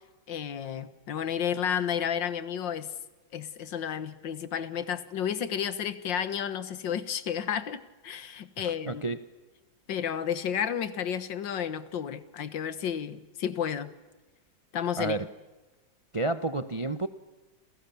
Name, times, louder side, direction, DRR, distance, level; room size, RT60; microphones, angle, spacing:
voice 1, 0.3-2.9 3.3-9.0 9.9-13.9 14.7-15.2, left 8 dB, 75° left, 13 dB, 2.0 m, -32 dB
voice 2, 8.6-9.2 15.0-15.3 16.1-17.1, right 2 dB, 35° right, 11 dB, 0.5 m, -30 dB
29.5 x 28.0 x 7.1 m, 1.2 s
omnidirectional pair, 2.0 m